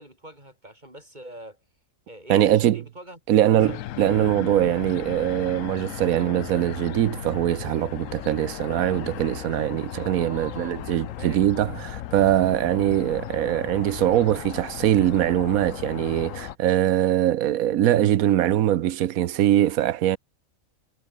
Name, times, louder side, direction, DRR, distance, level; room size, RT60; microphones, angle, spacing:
voice 1, 0.0-1.6 2.1-3.7 10.1-11.5, right 1 dB, 30° right, 8.0 m, -44 dB
voice 2, 2.3-2.8 3.3-20.2, right 12 dB, 85° right, 1.2 m, -22 dB
sound 1, 3.6-16.6, left 13 dB, 70° left, 1.0 m, -36 dB
omnidirectional pair, 1.5 m